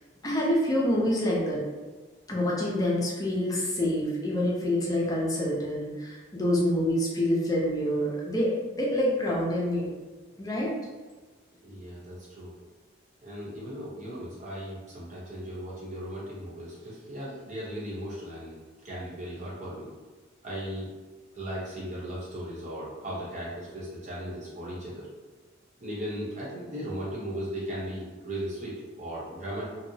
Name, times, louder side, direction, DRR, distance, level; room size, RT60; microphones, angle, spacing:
voice 1, 0.2-1.6 2.3-9.9 10.4-10.7, left 1 dB, 20° left, -4 dB, 0.5 m, -27 dB
voice 2, 11.6-12.5 13.2-18.6 18.8-19.9 20.4-20.9 21.3-25.1 25.8-29.7, equal, 35° right, -7 dB, 0.7 m, -37 dB
2.7 x 2.0 x 2.6 m, 1.3 s
head